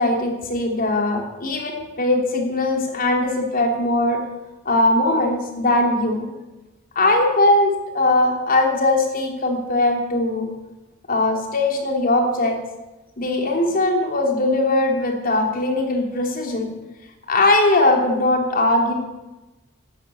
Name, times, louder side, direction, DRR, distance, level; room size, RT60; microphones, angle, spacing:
voice 1, 0.0-4.2 4.6-6.3 6.9-10.5 11.1-12.6 13.2-16.7 17.3-18.9, left 2 dB, 45° left, 2 dB, 3.1 m, -20 dB
12.0 x 12.0 x 8.4 m, 1.1 s
head